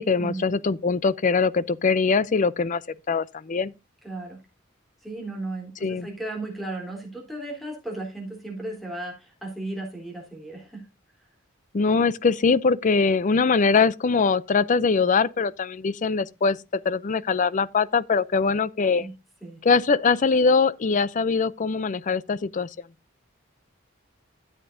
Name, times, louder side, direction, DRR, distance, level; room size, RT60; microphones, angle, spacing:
voice 1, 0.0-2.8 3.1-3.7 5.8-6.1 11.7-16.6 16.8-19.1 19.6-22.7, left 4 dB, 35° left, 0.4 m, -22 dB
voice 2, 4.0-4.4 5.0-10.9 19.0-19.1 19.4-19.6, right 2 dB, ahead, 3.5 m, -35 dB
13.0 x 8.1 x 2.6 m
head